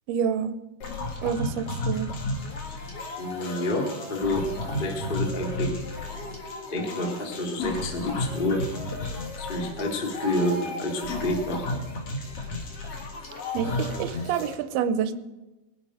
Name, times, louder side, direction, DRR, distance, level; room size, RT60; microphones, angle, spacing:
voice 1, 0.1-0.6 1.2-2.1 13.5-15.1, right 7 dB, 80° right, 11 dB, 2.5 m, -28 dB
sound 1, 0.8-14.5, left 1 dB, 50° left, 2.0 m, -33 dB
voice 2, 3.2-4.4 4.8-5.8 6.7-8.6 9.4-11.6, left 1 dB, 30° left, 1 dB, 1.0 m, -28 dB
21.0 x 8.3 x 5.0 m, 1.0 s
omnidirectional pair, 4.7 m